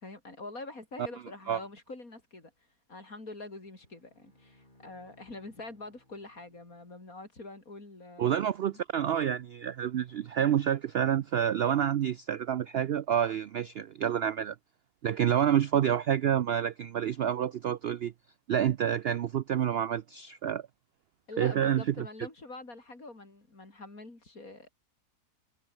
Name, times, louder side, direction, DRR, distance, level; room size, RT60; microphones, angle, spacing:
voice 1, 0.0-2.5 2.9-8.4 8.7-8.8 21.3-24.7, left 2 dB, 60° left, 5.5 m, -45 dB
Bowed string instrument, 3.7-7.3, left 1 dB, 30° left, 7.7 m, -64 dB
voice 2, 8.2-14.6 15.0-18.1 18.5-20.7 21.4-22.1, right 9 dB, 85° right, 0.5 m, -28 dB
omnidirectional pair, 1.7 m